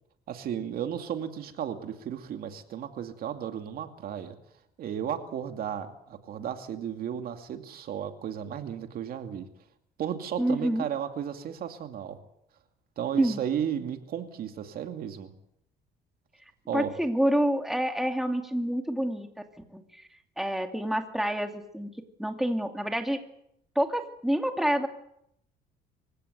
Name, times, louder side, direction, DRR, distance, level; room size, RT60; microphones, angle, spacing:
voice 1, 0.3-4.4 4.8-9.5 10.0-12.2 13.0-15.3 16.7-16.9, right 9 dB, 60° right, 6 dB, 2.5 m, -34 dB
voice 2, 10.4-10.8 13.2-13.4 16.7-19.3 19.7-20.1 20.4-21.9 22.2-23.2 23.8-24.9, equal, ahead, 4 dB, 2.5 m, -27 dB
25.5 x 16.5 x 8.2 m, 0.76 s
cardioid pair, 110°, 17 cm